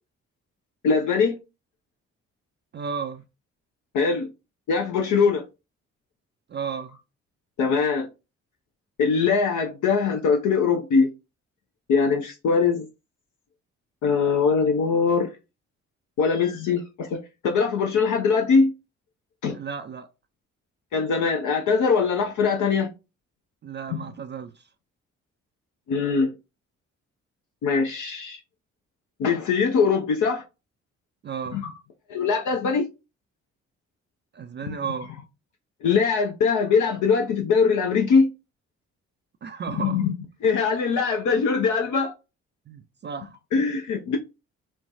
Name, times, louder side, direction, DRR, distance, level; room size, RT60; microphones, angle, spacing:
voice 1, 0.8-1.3 3.9-4.3 4.7-5.4 7.6-8.1 9.0-11.1 11.9-12.9 14.0-15.3 16.2-17.1 17.4-18.7 19.4-19.6 20.9-22.9 25.9-26.3 27.6-28.4 29.2-30.4 31.5-31.7 32.1-32.9 34.7-34.8 35.8-38.3 39.8-40.1 40.4-42.1 43.5-44.2, left 5 dB, 55° left, 0.6 m, -22 dB
voice 2, 2.7-3.2 6.5-7.0 19.5-20.1 23.6-24.7 31.2-31.7 34.3-35.1 39.4-40.1 42.7-43.4, right 6 dB, 30° right, 0.4 m, -33 dB
3.1 x 2.2 x 2.5 m
hypercardioid pair, 40°, 36 cm